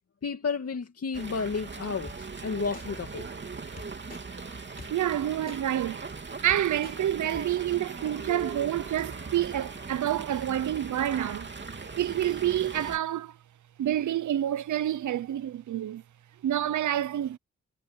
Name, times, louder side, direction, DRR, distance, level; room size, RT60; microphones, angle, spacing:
voice 1, 0.2-3.2, left 5 dB, 55° left, 2.5 m, -32 dB
Fowl, 1.1-13.0, right 4 dB, 40° right, 3.0 m, -40 dB
sound 1, 2.1-2.2 2.7-2.9 3.8-4.2 4.8-4.9 5.5-5.6 6.2-6.3 6.5-7.0 7.3-7.4, left 3 dB, 30° left, 3.2 m, -44 dB
voice 2, 4.9-6.1 6.4-11.5 12.0-13.4 13.8-16.0 16.4-17.4, right 11 dB, 80° right, 0.8 m, -28 dB
cardioid pair, 75°, 29 cm